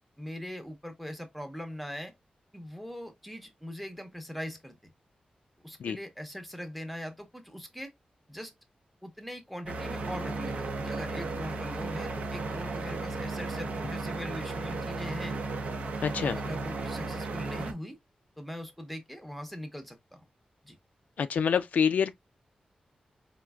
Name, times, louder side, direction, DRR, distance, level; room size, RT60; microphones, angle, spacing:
voice 1, 0.2-2.1 2.5-4.9 5.6-7.9 8.3-8.5 9.0-15.4 16.3-18.0 18.4-20.3 20.6-20.7, equal, ahead, 0.7 m, -41 dB
sound 1, 9.7-17.7, right 3 dB, 65° right, 0.6 m, -35 dB
voice 2, 16.0-16.4 21.2-22.1, left 7 dB, 85° left, 0.3 m, -26 dB
4.4 x 2.4 x 2.3 m
wide cardioid pair, 160°, 3 cm